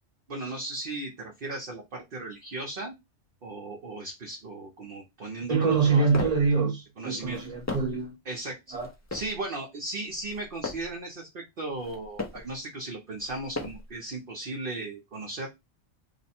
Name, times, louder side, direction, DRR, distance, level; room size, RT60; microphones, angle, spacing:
voice 1, 0.3-2.9 3.4-6.1 7.0-7.4 8.3-8.8 9.1-15.5, right 2 dB, 50° right, 0.9 m, -36 dB
voice 2, 5.5-8.1 8.7-8.9, right 4 dB, 35° right, 1.3 m, -25 dB
sound 1, 5.7-6.5 7.2-8.1 8.7-9.4 10.1-11.0 11.7-12.5 13.2-14.0, left 3 dB, 20° left, 0.5 m, -38 dB
3.1 x 2.1 x 4.2 m
omnidirectional pair, 1.2 m